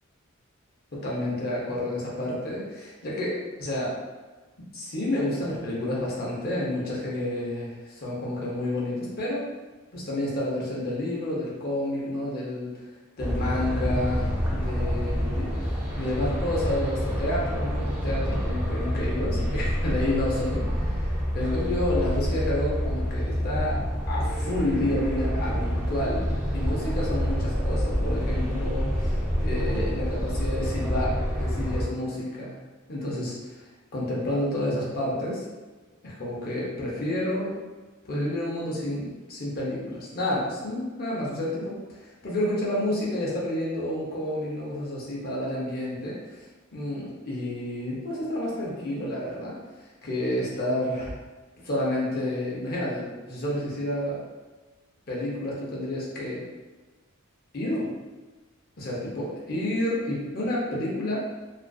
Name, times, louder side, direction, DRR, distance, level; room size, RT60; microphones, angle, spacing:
voice 1, 0.9-4.0 4.6-9.5 9.9-12.7 13.2-29.1 29.4-32.6 32.9-33.3 33.9-35.4 36.0-37.5 38.0-41.8 42.2-46.4 46.7-49.5 50.0-51.1 51.6-54.2 55.1-56.4 57.5-57.9 58.8-61.2, left 1 dB, 45° left, -5 dB, 0.7 m, -30 dB
sound 1, 13.2-31.8, equal, 5° right, 0.4 m, -27 dB
2.4 x 2.4 x 2.3 m, 1.2 s
head